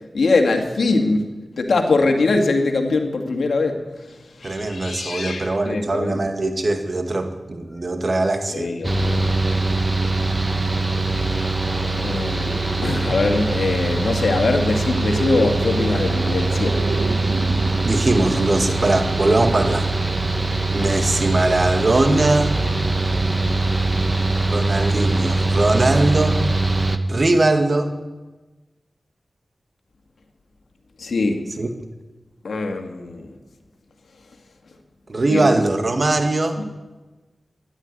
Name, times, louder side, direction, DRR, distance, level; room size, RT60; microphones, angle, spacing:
voice 1, 0.1-1.2 1.6-6.2 8.5-9.2 10.2-10.4 12.0-16.9 31.0-31.4 32.4-33.3 35.3-35.5 36.6-36.7, left 3 dB, 80° left, 4 dB, 2.0 m, -22 dB
voice 2, 4.4-8.7 17.8-19.9 20.7-22.6 24.5-26.4 27.1-27.9 31.6-31.7 35.1-36.6, right 2 dB, 50° right, 6 dB, 2.0 m, -20 dB
Mechanical fan, 8.8-27.0, right 2 dB, 30° right, 1.3 m, -22 dB
sound 1, 10.4-20.0, right 4 dB, 85° right, 1.2 m, -34 dB
13.0 x 11.5 x 9.7 m, 1.2 s
cardioid pair, 50°, 0 cm